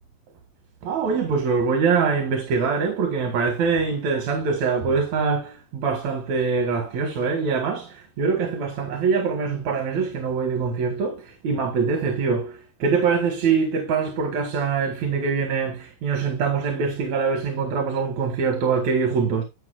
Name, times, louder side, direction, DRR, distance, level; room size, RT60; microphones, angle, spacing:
voice 1, 0.8-19.4, right 5 dB, 65° right, 2.8 m, -24 dB
10.5 x 8.7 x 2.3 m
omnidirectional pair, 3.6 m